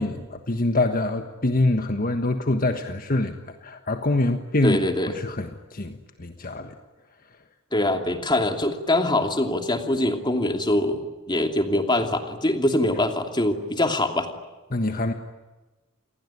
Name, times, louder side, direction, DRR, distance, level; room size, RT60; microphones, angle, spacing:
voice 1, 0.0-4.8 5.1-6.7 14.7-15.1, left 2 dB, 45° left, 7 dB, 1.4 m, -25 dB
voice 2, 4.6-5.2 7.7-14.3, left 1 dB, 25° left, 5 dB, 2.7 m, -23 dB
28.5 x 20.5 x 9.8 m, 1.2 s
head